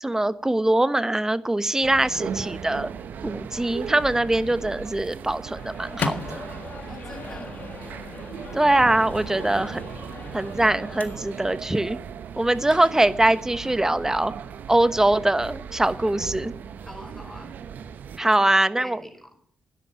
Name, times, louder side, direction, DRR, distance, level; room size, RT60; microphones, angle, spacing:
voice 1, 0.0-2.9 3.2-6.4 8.5-9.8 10.3-12.0 12.4-14.3 14.7-16.5 18.2-19.0, right 1 dB, 15° right, 14 dB, 1.1 m, -22 dB
sound 1, 1.8-18.2, right 7 dB, 70° right, 0.8 m, -37 dB
Microwave oven, 5.5-11.6, left 4 dB, 60° left, 1.7 m, -36 dB
voice 2, 6.9-7.7 16.8-17.5 18.2-19.3, equal, 10° left, 4 dB, 5.5 m, -43 dB
12.5 x 10.5 x 9.0 m, 0.65 s
hypercardioid pair, 40°, 3 cm